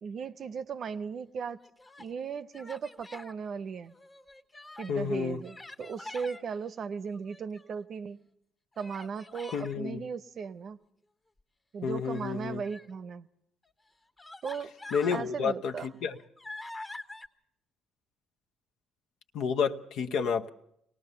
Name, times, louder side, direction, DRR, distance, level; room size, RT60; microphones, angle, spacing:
voice 1, 0.0-1.6 2.0-3.9 4.8-8.2 8.8-10.8 11.7-13.3 14.4-14.7 15.1-15.9, right 6 dB, 50° right, 0.7 m, -37 dB
Human voice, 1.5-2.1 2.5-3.3 3.9-5.0 5.4-6.4 7.1-7.8 8.7-9.7 12.0-12.9 13.6-13.7 14.2-15.3 15.7-17.3, left 2 dB, 25° left, 1.2 m, -46 dB
voice 2, 4.9-5.4 9.5-10.0 11.8-12.6 14.9-16.2 19.3-20.5, left 6 dB, 65° left, 0.8 m, -30 dB
23.5 x 18.5 x 6.8 m
hypercardioid pair, 50°, 0 cm